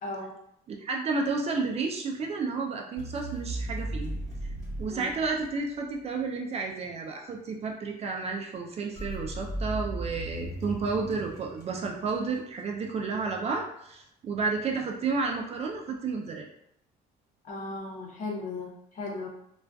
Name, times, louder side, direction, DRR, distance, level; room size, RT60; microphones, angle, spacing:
voice 1, 0.7-4.2 4.8-16.5, right 4 dB, 40° right, 1 dB, 0.4 m, -31 dB
sound 1, 3.0-6.0 9.0-12.4, right 1 dB, 20° left, 1.0 m, -36 dB
voice 2, 17.4-19.3, left 3 dB, 50° left, -2 dB, 0.8 m, -36 dB
2.4 x 2.3 x 2.2 m, 0.74 s
cardioid pair, 110°, 17 cm